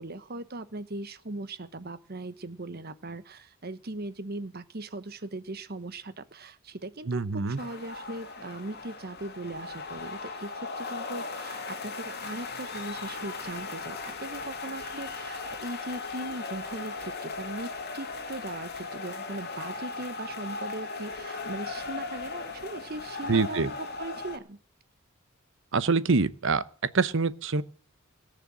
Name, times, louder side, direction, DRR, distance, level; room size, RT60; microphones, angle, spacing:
voice 1, 0.0-24.6, right 2 dB, 50° right, 13 dB, 1.1 m, -39 dB
voice 2, 7.1-7.6 23.3-23.7 25.7-26.6 26.9-27.6, right 4 dB, 65° right, 15 dB, 0.9 m, -25 dB
sound 1, 7.6-24.4, left 4 dB, 50° left, 2.3 m, -38 dB
18.0 x 6.7 x 8.9 m, 0.43 s
head